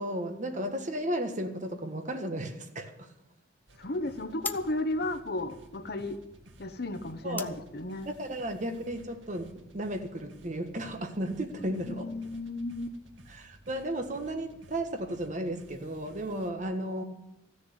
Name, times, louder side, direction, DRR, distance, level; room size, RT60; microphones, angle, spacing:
voice 1, 0.0-3.1 7.2-7.5 8.1-12.0 13.3-17.0, right 1 dB, 40° right, 1.5 m, -34 dB
sound 1, 3.7-16.5, right 1 dB, 80° right, 1.9 m, -55 dB
voice 2, 3.8-6.2 6.6-8.1 11.9-12.9, left 2 dB, 55° left, 1.1 m, -34 dB
sound 2, 4.4-9.8, left 4 dB, 10° left, 0.5 m, -47 dB
14.5 x 6.8 x 9.9 m
head